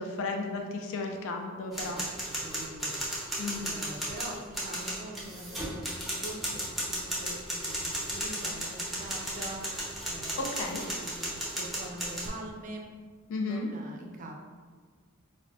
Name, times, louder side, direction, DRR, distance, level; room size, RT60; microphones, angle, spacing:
voice 1, 0.0-2.0 3.4-3.7 10.4-10.8 13.3-13.7, left 3 dB, 60° left, 2 dB, 0.4 m, -34 dB
sound 1, 1.7-12.3, right 1 dB, ahead, 0.7 m, -35 dB
voice 2, 1.7-2.1 2.4-3.0 3.6-10.5 10.8-12.9 13.4-14.3, right 1 dB, 35° right, 1 dB, 0.4 m, -44 dB
4.5 x 2.1 x 2.5 m, 1.6 s
head